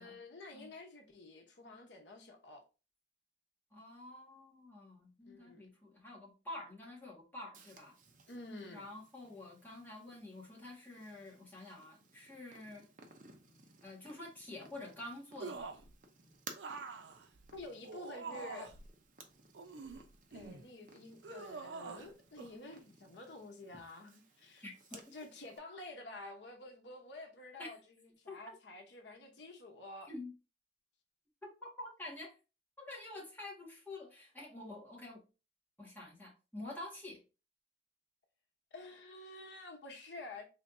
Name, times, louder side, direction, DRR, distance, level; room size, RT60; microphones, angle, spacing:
voice 1, 0.0-2.6 5.2-5.7 8.3-8.9 17.5-18.7 20.3-24.7 24.9-30.1 38.7-40.5, left 2 dB, 85° left, 0.9 m, -50 dB
voice 2, 3.7-8.0 8.7-12.9 13.8-15.7 24.6-24.7 27.6-27.7 28.3-28.6 30.1-30.3 31.4-32.3 32.8-35.2 35.8-37.2, left 2 dB, 10° left, 1.5 m, -48 dB
Purr, 7.5-25.6, right 4 dB, 45° right, 0.7 m, -59 dB
sound 1, 15.4-15.9 16.6-18.9 19.5-20.6 21.2-22.1 22.4-22.5, right 4 dB, 90° right, 0.5 m, -46 dB
4.4 x 3.3 x 2.5 m
head